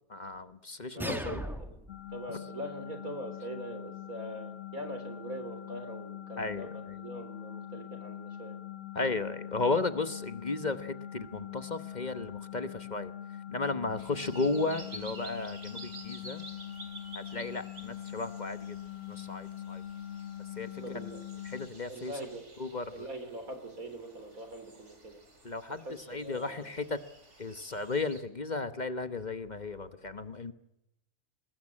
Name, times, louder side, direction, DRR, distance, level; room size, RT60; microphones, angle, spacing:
voice 1, 0.1-1.4 6.4-7.0 8.9-13.1 13.5-16.4 17.1-18.8 19.1-19.8 20.6-21.1 21.4-22.1 22.6-23.1 25.4-25.8 26.1-27.0 27.4-30.5, left 3 dB, 35° left, 11 dB, 1.1 m, -34 dB
voice 2, 0.9-1.8 2.1-8.6 20.8-21.3 21.9-22.4 22.9-25.2 25.8-26.7, right 1 dB, 75° right, 8 dB, 4.3 m, -42 dB
sound 1, 1.0-2.0, equal, ahead, 2.0 m, -37 dB
sound 2, 1.9-21.7, left 11 dB, 60° left, 1.5 m, -43 dB
sound 3, 14.0-28.2, right 2 dB, 50° right, 3.9 m, -52 dB
22.5 x 20.5 x 8.6 m, 0.84 s
omnidirectional pair, 1.5 m